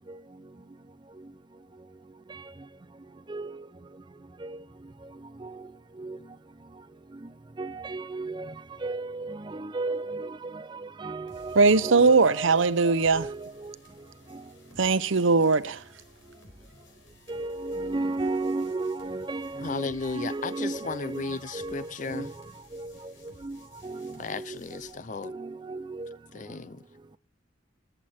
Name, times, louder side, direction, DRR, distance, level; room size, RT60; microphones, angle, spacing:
voice 1, 3.3-3.7 4.4-4.6 5.0-5.1 5.4-5.7 6.0-6.2 7.6-8.5 8.8-13.7 14.3-14.4 17.3-22.3 22.7-24.9 25.2-26.2, right 2 dB, 25° right, 0.5 m, -35 dB
sound 1, 11.3-24.9, left 2 dB, 85° left, 4.5 m, -56 dB
voice 2, 11.6-13.3 14.8-15.8, right 4 dB, 85° right, 0.7 m, -20 dB
voice 3, 19.6-22.3 24.2-25.3 26.3-26.8, left 4 dB, 40° left, 0.5 m, -35 dB
19.0 x 8.1 x 4.3 m
head